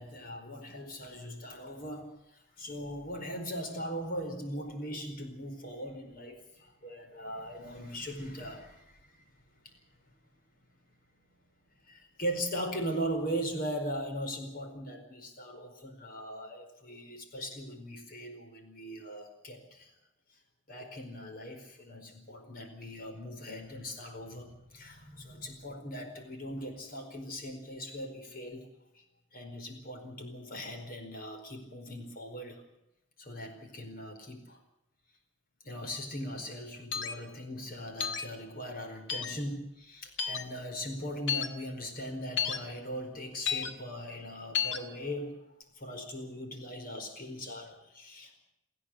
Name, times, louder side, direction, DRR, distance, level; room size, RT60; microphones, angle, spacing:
voice 1, 0.0-9.3 9.6-9.7 11.8-19.9 20.7-28.7 28.9-29.0 29.3-32.6 33.2-34.6 35.6-45.4 45.7-48.4, equal, 50° left, 5 dB, 4.8 m, -39 dB
sound 1, 36.9-37.1 38.0-38.3 39.1-39.3 40.2-40.4 41.3-41.5 42.4-42.6 43.5-43.7 44.5-44.8, left 8 dB, 80° left, 1.9 m, -31 dB
28.5 x 10.0 x 9.7 m, 0.85 s
head